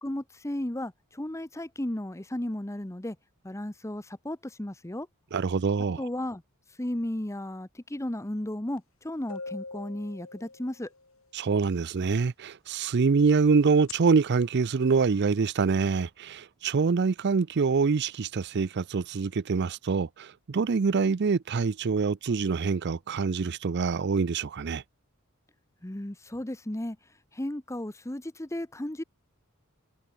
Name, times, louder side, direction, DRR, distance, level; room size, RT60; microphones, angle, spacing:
voice 1, 0.0-3.2 3.4-5.1 6.0-6.4 6.8-10.9 25.8-27.0 27.3-29.0, left 1 dB, 15° left, 0.9 m, -34 dB
voice 2, 5.3-6.1 11.3-24.8, right 5 dB, 50° right, 0.5 m, -25 dB
sound 1, 8.8-8.9 9.3-11.0 13.7-13.9, left 4 dB, 65° left, 3.6 m, -41 dB
head